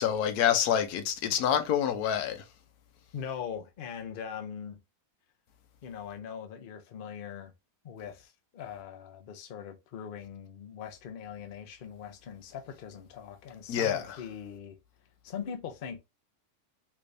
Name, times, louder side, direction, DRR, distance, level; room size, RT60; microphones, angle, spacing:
voice 1, 0.0-2.4 13.7-14.2, left 9 dB, 90° left, 1.2 m, -27 dB
voice 2, 3.1-4.8 5.8-7.5 7.8-14.8 15.2-16.0, left 7 dB, 50° left, 0.6 m, -41 dB
3.4 x 3.3 x 2.5 m
omnidirectional pair, 1.6 m